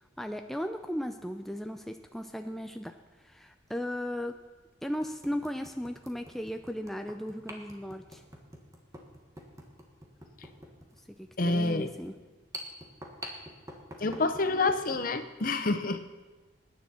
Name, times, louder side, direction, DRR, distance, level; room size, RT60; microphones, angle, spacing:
voice 1, 0.2-4.4 4.8-8.2 11.2-12.2, equal, ahead, 6 dB, 0.4 m, -36 dB
sound 1, 2.2-2.3 3.7-3.8 4.4-4.5 5.0-14.9, right 1 dB, 15° right, 1.4 m, -47 dB
voice 2, 11.4-11.9 14.0-16.0, left 3 dB, 45° left, 9 dB, 0.9 m, -28 dB
20.5 x 9.6 x 4.4 m, 1.2 s
head